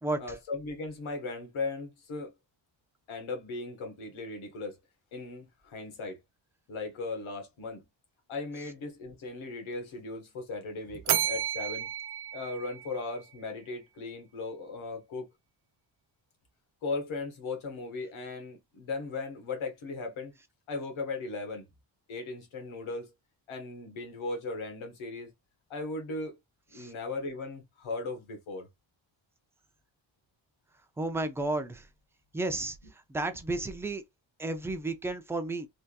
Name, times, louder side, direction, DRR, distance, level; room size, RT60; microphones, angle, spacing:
voice 1, 0.2-2.3 3.1-4.8 5.1-6.2 6.7-7.8 8.3-11.9 12.3-15.3 16.8-20.4 20.7-21.6 22.1-23.1 23.5-25.3 25.7-26.3 26.7-28.7, left 3 dB, 85° left, 1.4 m, -37 dB
Bell, 11.1-13.4, right 10 dB, 55° right, 0.5 m, -32 dB
voice 2, 31.0-31.8 32.3-32.8 33.1-34.0 34.4-35.7, right 2 dB, 5° right, 0.3 m, -32 dB
3.4 x 2.7 x 2.3 m
wide cardioid pair, 145°, 47 cm